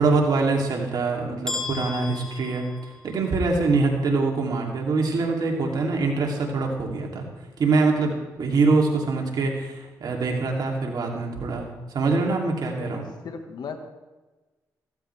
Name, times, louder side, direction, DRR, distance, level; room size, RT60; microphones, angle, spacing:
voice 1, 0.0-2.6 3.0-7.3 7.6-13.0, right 3 dB, 65° right, 0 dB, 3.0 m, -24 dB
sound 1, 1.5-3.4, left 3 dB, 10° left, 1.8 m, -35 dB
voice 2, 12.8-13.8, left 6 dB, 70° left, 6 dB, 1.7 m, -37 dB
15.5 x 14.0 x 3.5 m, 1.2 s
supercardioid pair, 60°, 7 cm